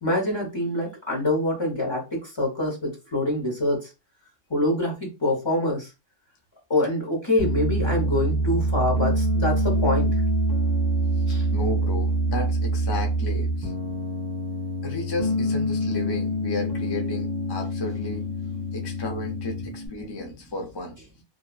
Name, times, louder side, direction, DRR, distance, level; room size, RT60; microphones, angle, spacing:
voice 1, 0.0-3.9 4.5-5.9 6.7-10.1 11.3-11.5, left 1 dB, 25° left, 0.9 m, -25 dB
Piano, 7.4-19.9, right 1 dB, 40° right, 1.0 m, -25 dB
voice 2, 11.5-13.7 14.8-18.3 18.7-21.0, left 2 dB, 40° left, 0.3 m, -33 dB
2.7 x 2.3 x 2.3 m
omnidirectional pair, 1.3 m